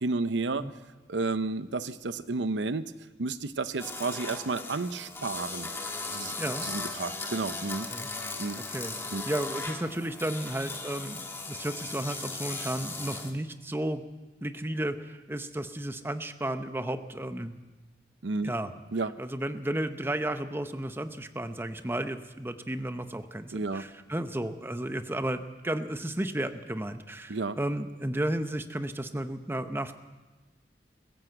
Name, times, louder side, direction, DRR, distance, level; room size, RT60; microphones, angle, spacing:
voice 1, 0.0-0.6 1.1-2.9 3.2-5.7 6.1-6.3 6.6-7.9 8.4-8.6 9.1-9.2 18.2-18.5 18.9-19.1 23.5-23.8 27.3-27.5, right 3 dB, 85° right, 13 dB, 0.8 m, -31 dB
sound 1, 3.8-13.3, left 3 dB, 15° left, 1.6 m, -37 dB
voice 2, 8.6-14.0 14.4-17.5 18.4-18.7 19.2-29.9, right 1 dB, 15° right, 9 dB, 0.8 m, -33 dB
22.0 x 15.0 x 7.9 m, 1.2 s
head